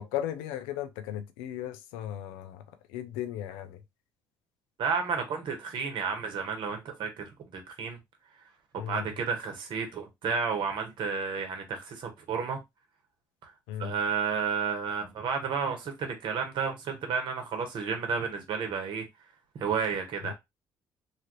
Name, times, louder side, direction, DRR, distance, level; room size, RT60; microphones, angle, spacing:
voice 1, 0.0-2.6 2.9-3.8 8.8-9.1 13.7-13.9 20.2-20.3, left 11 dB, 85° left, 0.4 m, -36 dB
voice 2, 4.8-8.0 8.9-12.6 13.4-13.5 13.8-19.0 19.5-20.3, right 5 dB, 65° right, 1.1 m, -31 dB
2.9 x 2.5 x 2.9 m
supercardioid pair, 60°, 9 cm